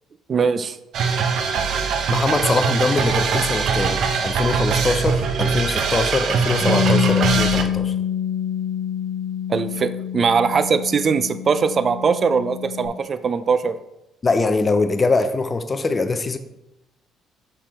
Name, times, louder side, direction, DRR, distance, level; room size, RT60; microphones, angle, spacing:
voice 1, 0.3-0.8 9.5-13.7, right 5 dB, 35° right, 11 dB, 0.4 m, -21 dB
sound 1, 0.9-7.6, right 5 dB, 60° right, 0.8 m, -22 dB
voice 2, 2.1-7.9 14.2-16.4, left 3 dB, 20° left, 9 dB, 0.6 m, -22 dB
Bass guitar, 6.6-12.9, left 8 dB, ahead, 2.2 m, -25 dB
6.7 x 5.8 x 4.3 m, 0.90 s
cardioid pair, 140°, 0 cm